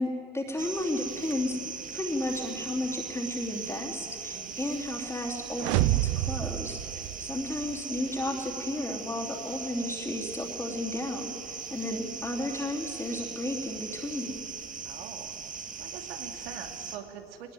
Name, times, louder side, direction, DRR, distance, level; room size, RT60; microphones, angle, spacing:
voice 1, 0.0-1.6 1.9-14.5, left 1 dB, 10° left, 0 dB, 3.0 m, -33 dB
sound 1, 0.6-17.0, right 6 dB, 25° right, 2.0 m, -39 dB
sound 2, 5.6-7.7, right 18 dB, 60° right, 0.5 m, -28 dB
voice 2, 14.8-15.3 15.8-17.5, right 8 dB, 75° right, 6 dB, 2.7 m, -44 dB
21.0 x 20.0 x 9.2 m, 2.8 s
supercardioid pair, 110°, 30 cm